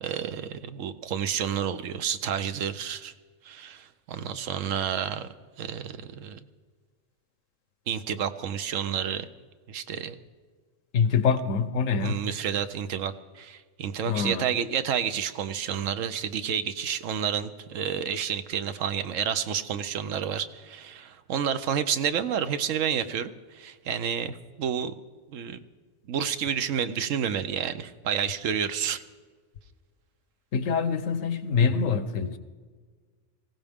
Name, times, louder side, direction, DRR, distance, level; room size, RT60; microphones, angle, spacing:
voice 1, 0.0-3.1 3.4-6.4 7.9-9.3 9.7-10.1 12.0-24.9 25.3-25.6 26.1-29.0, right 8 dB, 85° right, 11 dB, 1.1 m, -30 dB
voice 2, 10.9-12.2 14.1-14.5 30.5-32.4, left 5 dB, 90° left, 11 dB, 1.2 m, -25 dB
19.5 x 16.0 x 3.6 m, 1.5 s
omnidirectional pair, 1.3 m